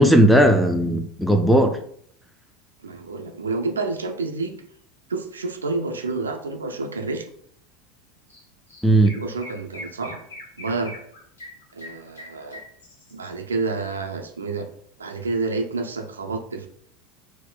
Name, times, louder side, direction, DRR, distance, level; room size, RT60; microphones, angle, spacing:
voice 1, 0.0-1.8 8.8-9.1, right 1 dB, ahead, 6 dB, 0.3 m, -16 dB
voice 2, 2.8-4.5 5.1-7.3 9.2-10.2 10.6-10.9 11.7-12.6 13.1-14.7 15.0-16.7, right 3 dB, 80° right, 5 dB, 0.3 m, -29 dB
Chirp tweet, 8.3-8.4 8.7-13.3, left 1 dB, 75° left, 0.7 m, -42 dB
4.0 x 2.1 x 2.3 m, 0.63 s
figure-of-eight pair, 80°, 0 cm